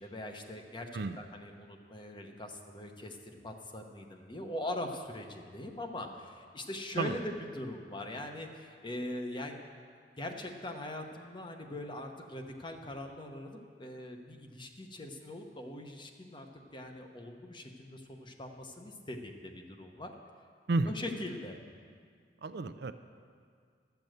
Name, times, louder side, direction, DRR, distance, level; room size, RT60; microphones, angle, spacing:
voice 1, 0.0-9.6 10.2-16.5 16.7-20.1 20.9-21.6, left 1 dB, 25° left, 4 dB, 0.9 m, -41 dB
voice 2, 22.4-22.9, right 3 dB, 60° right, 10 dB, 0.5 m, -31 dB
12.5 x 7.0 x 7.8 m, 2.1 s
head